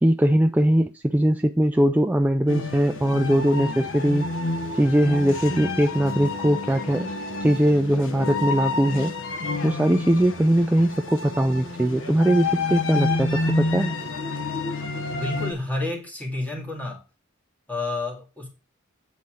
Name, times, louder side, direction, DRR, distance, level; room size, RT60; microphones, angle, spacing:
voice 1, 0.0-4.3 4.7-7.1 7.4-9.1 9.6-13.9, right 1 dB, 10° right, 0.3 m, -21 dB
sound 1, 2.5-15.5, left 3 dB, 65° left, 1.1 m, -29 dB
voice 2, 15.1-17.0 17.7-18.5, left 2 dB, 10° left, 2.1 m, -30 dB
8.4 x 4.2 x 6.2 m
head